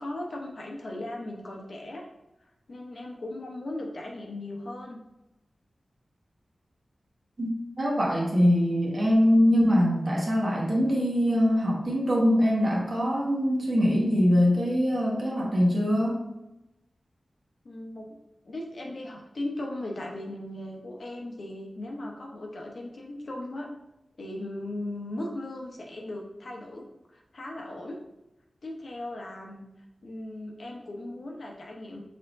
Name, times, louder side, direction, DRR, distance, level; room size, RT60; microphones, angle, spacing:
voice 1, 0.0-2.1 2.7-5.0 17.6-18.1 18.4-23.7 24.2-26.8 27.1-28.0 28.6-29.6 30.0-32.0, left 1 dB, 65° left, 0 dB, 0.8 m, -37 dB
voice 2, 7.8-16.2, equal, 55° right, -3 dB, 1.3 m, -23 dB
4.5 x 3.6 x 2.5 m, 0.94 s
cardioid pair, 55°, 0 cm